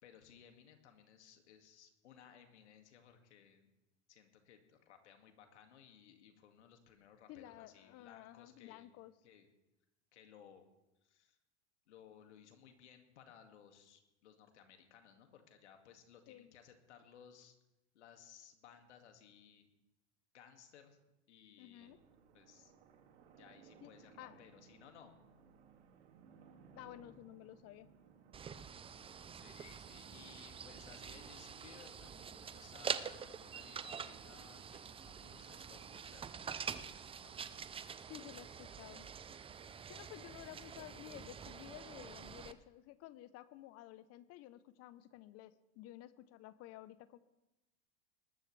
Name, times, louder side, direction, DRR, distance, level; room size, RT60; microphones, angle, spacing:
voice 1, 0.0-3.7 4.1-8.9 9.2-9.5 10.1-10.7 11.0-11.4 11.9-17.6 17.9-19.7 20.3-21.0 21.3-21.9 22.3-22.7 23.4-25.1 29.3-37.3, left 8 dB, 85° left, 5 dB, 2.2 m, -61 dB
voice 2, 7.3-9.2 16.3-16.5 21.6-22.0 23.8-24.4 26.7-27.9 38.1-39.1 39.9-47.2, left 14 dB, 45° left, 15 dB, 0.8 m, -53 dB
sound 1, 21.8-41.4, right 6 dB, 80° right, 2.4 m, -64 dB
sound 2, 28.3-42.5, right 7 dB, 15° right, 0.6 m, -46 dB
20.0 x 13.0 x 3.3 m, 0.98 s
hypercardioid pair, 105°, 34 cm